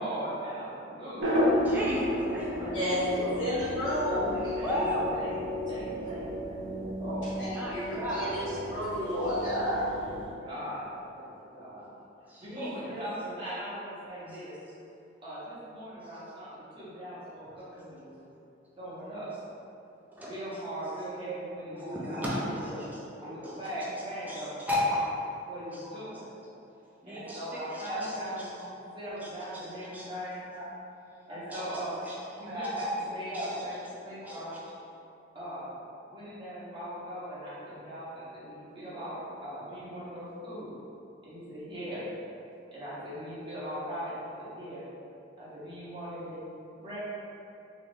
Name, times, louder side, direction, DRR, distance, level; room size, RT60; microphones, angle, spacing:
voice 1, 0.0-3.6 4.5-7.4 7.9-8.8 9.9-11.9 12.4-14.5 15.2-18.1 18.8-19.3 20.2-22.8 23.2-24.6 25.5-26.3 27.0-28.6 28.9-30.5 31.3-32.0 32.4-33.7 34.0-34.6 35.3-35.8 36.1-40.7 41.2-42.0 42.7-44.8 45.4-46.4 46.8-47.0, right 1 dB, 25° right, -10 dB, 0.9 m, -40 dB
sound 1, 1.2-10.3, equal, 75° right, 0.7 m, -32 dB
voice 2, 1.6-3.5 4.6-5.0 7.5-8.4 12.3-12.9 14.3-14.4 16.0-16.1 20.1-20.3 21.8-23.6 24.0-25.0 25.7-25.9 27.0-28.2 28.6-28.7 29.2-29.3 29.8-30.1 30.5-30.8 31.3-33.7 34.2-34.4 34.7-34.8, left 1 dB, 10° right, -7 dB, 0.5 m, -35 dB
voice 3, 3.4-4.6 7.7-7.8 8.1-8.4 8.7-9.8, equal, 70° left, -12 dB, 1.5 m, -30 dB
2.9 x 2.4 x 3.5 m, 2.6 s
head